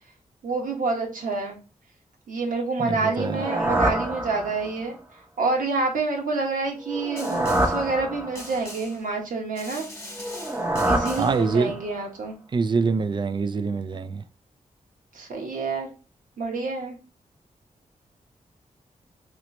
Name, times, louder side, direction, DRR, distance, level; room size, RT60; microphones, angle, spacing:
voice 1, 0.4-1.6 2.3-5.0 5.4-9.9 10.8-12.4 15.1-15.9 16.4-17.0, right 3 dB, 75° right, 1.1 m, -27 dB
voice 2, 2.8-3.4 11.2-11.8 12.5-14.2, right 4 dB, 35° right, 0.3 m, -25 dB
sound 1, 3.1-4.9 6.8-8.7 10.1-12.0, right 1 dB, 15° right, 0.7 m, -27 dB
Snare drum, 7.2-7.9 8.4-9.1 9.6-11.5, left 1 dB, 20° left, 1.1 m, -41 dB
3.1 x 3.0 x 2.9 m
cardioid pair, 65°, 14 cm